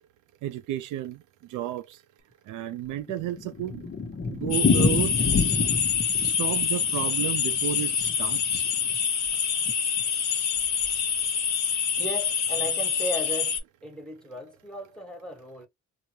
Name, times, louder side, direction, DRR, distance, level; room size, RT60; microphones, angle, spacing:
voice 1, 0.4-1.2 1.5-2.0 2.5-3.9 4.3-5.1 6.2-8.7, right 13 dB, 85° right, 0.5 m, -32 dB
Thunder, 2.7-9.0 9.3-9.4 9.7-9.8 10.0-10.1 10.7-11.0, left 4 dB, 35° left, 0.8 m, -28 dB
sound 1, 4.5-13.6, left 7 dB, 60° left, 0.9 m, -26 dB
voice 2, 12.0-15.7, equal, 5° left, 1.3 m, -36 dB
3.7 x 2.1 x 2.8 m
cardioid pair, 90°, 30 cm